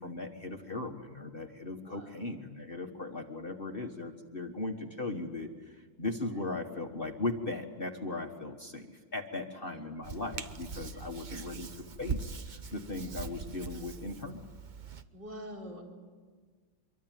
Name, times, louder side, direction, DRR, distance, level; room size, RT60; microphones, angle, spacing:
voice 1, 0.0-14.4, left 2 dB, 30° left, 4 dB, 1.6 m, -38 dB
voice 2, 1.8-2.2 6.3-6.4 9.5-9.9 10.9-11.0 11.3-11.7 15.1-15.8, equal, 65° right, -1 dB, 5.2 m, -47 dB
Hands, 10.0-15.0, right 5 dB, 35° right, 0.7 m, -41 dB
25.5 x 23.5 x 9.2 m, 1.5 s
omnidirectional pair, 2.0 m